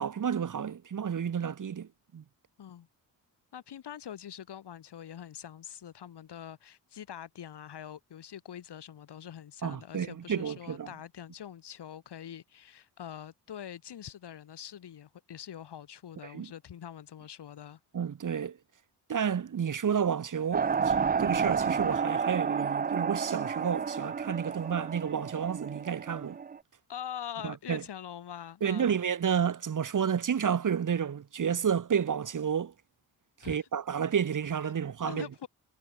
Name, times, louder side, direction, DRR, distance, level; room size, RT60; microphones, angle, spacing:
voice 1, 0.0-2.2 9.6-10.9 16.2-16.5 17.9-18.6 19.1-26.4 27.4-27.8 28.6-32.7 33.4-35.5, right 7 dB, 50° right, 1.4 m, -31 dB
voice 2, 3.5-17.8 26.9-28.9 33.4-33.6 35.0-35.5, left 9 dB, 75° left, 6.1 m, -44 dB
sound 1, 20.5-26.6, right 6 dB, 20° right, 0.5 m, -31 dB
supercardioid pair, 55°, 41 cm